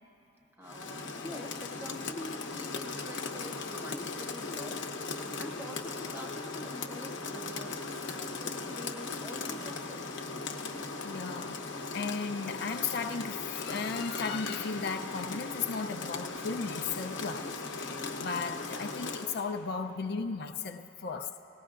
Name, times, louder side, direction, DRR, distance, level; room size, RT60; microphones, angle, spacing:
voice 1, 0.4-4.9 5.4-7.7 8.0-10.1, left 1 dB, 10° right, 2 dB, 0.8 m, -46 dB
Rain, 0.6-19.4, left 4 dB, 85° left, 0.9 m, -38 dB
voice 2, 11.0-21.4, left 5 dB, 60° left, 5 dB, 0.5 m, -36 dB
19.5 x 18.0 x 2.5 m, 3.0 s
head